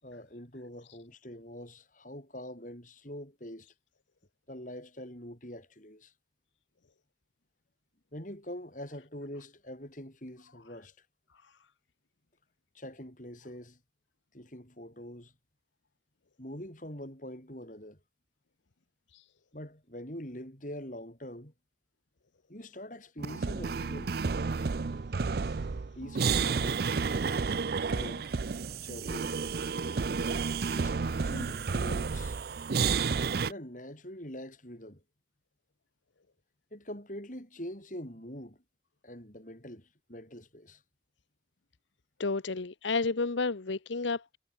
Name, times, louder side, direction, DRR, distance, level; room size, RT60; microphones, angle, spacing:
voice 1, 0.0-3.7 4.5-6.1 8.1-10.9 12.7-13.8 14.3-15.3 16.4-18.0 19.5-21.5 22.5-24.3 26.0-27.0 27.8-28.3 28.8-29.4 30.7-32.4 33.4-35.0 36.7-38.6 39.0-40.8, equal, 45° left, 7.7 m, -44 dB
sound 1, 23.2-33.5, right 5 dB, 55° right, 0.5 m, -31 dB
voice 2, 42.2-44.4, left 3 dB, 80° left, 0.9 m, -31 dB
head